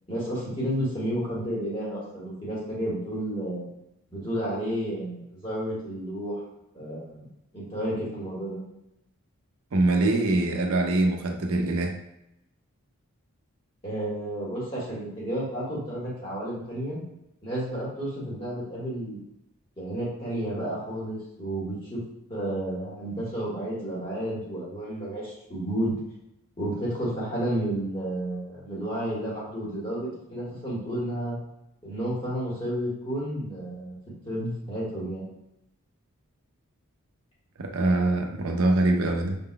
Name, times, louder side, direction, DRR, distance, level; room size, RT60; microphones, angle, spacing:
voice 1, 0.1-3.6 4.1-6.4 6.7-7.3 7.5-8.6 13.8-17.0 17.4-19.2 19.8-22.0 22.3-26.0 26.6-31.4 31.8-33.9 34.2-35.2, right 1 dB, 25° left, -7 dB, 1.6 m, -31 dB
voice 2, 9.7-12.0 37.6-39.4, right 2 dB, 75° right, 3 dB, 0.6 m, -23 dB
5.5 x 3.8 x 2.2 m, 0.85 s
head